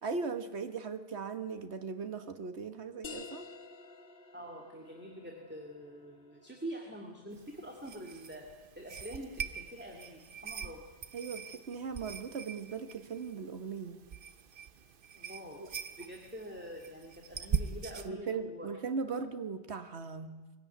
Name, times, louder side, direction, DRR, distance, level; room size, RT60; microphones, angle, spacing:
voice 1, 0.0-3.5 11.1-14.0 15.6-15.7 18.0-20.4, right 5 dB, 75° right, 9 dB, 1.6 m, -38 dB
sound 1, 3.0-8.4, left 4 dB, 60° left, 1.4 m, -52 dB
voice 2, 4.3-8.5 8.8-10.8 15.2-15.6 16.0-18.7, right 1 dB, 10° right, 1 dB, 2.3 m, -45 dB
sound 2, 7.3-18.1, right 7 dB, 55° right, 1.0 m, -42 dB
22.0 x 16.0 x 9.3 m, 1.2 s
omnidirectional pair, 1.1 m